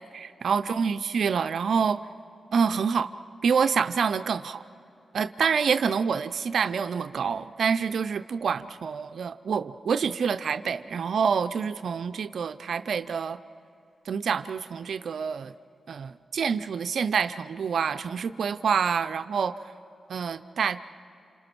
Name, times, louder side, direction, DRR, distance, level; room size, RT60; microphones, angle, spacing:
voice 1, 0.1-2.0 2.5-3.1 3.4-4.6 5.1-13.4 14.1-15.5 15.9-19.6 20.1-20.8, right 6 dB, 75° right, 11 dB, 0.5 m, -27 dB
29.5 x 27.5 x 6.1 m, 2.7 s
cardioid pair, 60°, 0 cm